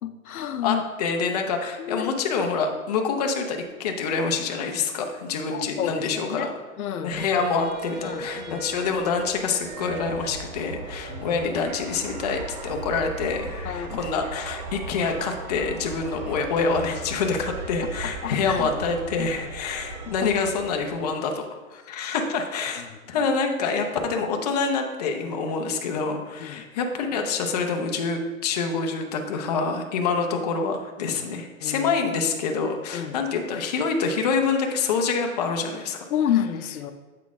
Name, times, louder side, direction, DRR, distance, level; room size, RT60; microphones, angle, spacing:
voice 1, 0.0-0.9 1.8-2.1 5.5-6.5 6.8-7.2 8.0-8.7 11.1-11.4 13.6-14.1 18.0-18.7 19.2-19.3 20.0-20.3 22.8-23.3 26.4-26.6 31.6-31.9 32.9-33.2 36.1-36.9, left 9 dB, 80° left, 9 dB, 0.7 m, -30 dB
voice 2, 0.6-6.5 7.0-21.5 21.7-36.0, left 5 dB, 30° left, 3 dB, 0.5 m, -26 dB
sound 1, 7.2-21.0, right 3 dB, 30° right, 0.5 m, -38 dB
7.4 x 3.9 x 3.5 m, 1.3 s
hypercardioid pair, 155°, 42 cm